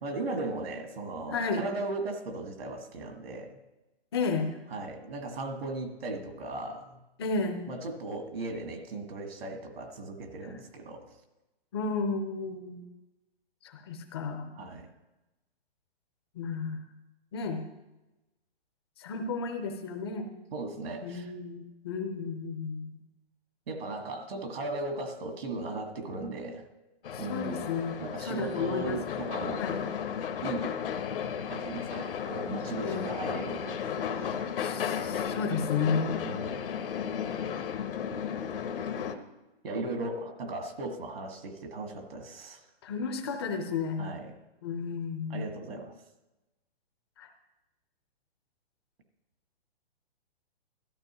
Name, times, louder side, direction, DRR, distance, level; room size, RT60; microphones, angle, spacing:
voice 1, 0.0-3.6 4.7-7.0 7.7-11.1 14.6-14.9 20.5-21.3 23.7-26.6 27.2-27.7 28.0-29.6 30.4-30.8 31.5-34.4 36.2-36.7 39.6-42.6 44.0-44.4 45.3-45.9, right 2 dB, 70° right, 4 dB, 1.9 m, -37 dB
voice 2, 1.3-1.7 4.1-4.6 7.2-7.6 10.4-10.5 11.7-12.8 13.6-14.5 16.3-16.8 17.3-17.6 19.0-20.4 21.0-22.9 27.1-29.1 29.6-29.8 32.8-33.1 34.6-36.1 42.8-44.1 44.6-45.5 47.2-47.3, left 4 dB, 25° left, 5 dB, 0.6 m, -33 dB
sound 1, 27.0-39.1, left 7 dB, 60° left, 1.0 m, -34 dB
13.5 x 12.5 x 3.0 m, 1.0 s
hypercardioid pair, 165°, 31 cm